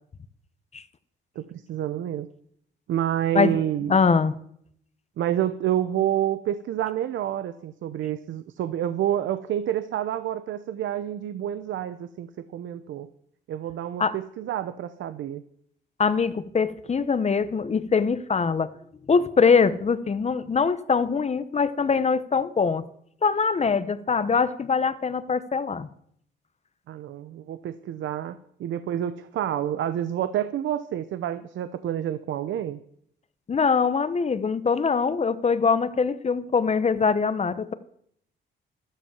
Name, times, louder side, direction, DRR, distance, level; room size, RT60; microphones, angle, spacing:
voice 1, 1.4-2.3 2.9-4.0 5.2-13.1 13.5-15.4 26.9-32.8, right 11 dB, 75° right, 13 dB, 0.8 m, -28 dB
voice 2, 3.9-4.3 14.0-14.1 16.0-18.7 19.1-22.8 23.2-25.9 33.5-37.7, left 5 dB, 35° left, 13 dB, 1.0 m, -23 dB
12.5 x 12.5 x 7.4 m, 0.69 s
cardioid pair, 90°, 20 cm